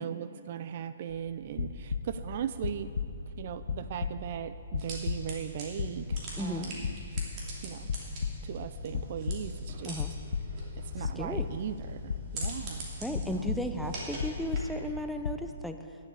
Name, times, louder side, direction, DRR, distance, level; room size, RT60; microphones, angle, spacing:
voice 1, 0.0-2.9 3.4-7.0 7.6-7.9 8.4-10.0 10.8-13.6, right 9 dB, 50° right, 12 dB, 0.4 m, -38 dB
sound 1, 1.1-2.2 2.6-3.4 3.6-5.4 5.7-6.5 6.8-7.6 7.9-8.5 8.9-9.6 10.0-10.7 11.0-11.7 12.1-12.9 13.1-13.9 14.2-15.0 15.2-15.5, left 6 dB, 70° left, 0.7 m, -34 dB
sound 2, 1.4-15.1, left 4 dB, 40° left, 1.9 m, -45 dB
sound 3, 4.8-14.8, right 2 dB, 35° right, 2.9 m, -45 dB
voice 2, 6.4-6.7 9.8-10.1 11.0-11.5 13.0-16.0, equal, ahead, 5 dB, 0.5 m, -35 dB
11.0 x 7.2 x 8.1 m, 2.6 s
hypercardioid pair, 145°, 0 cm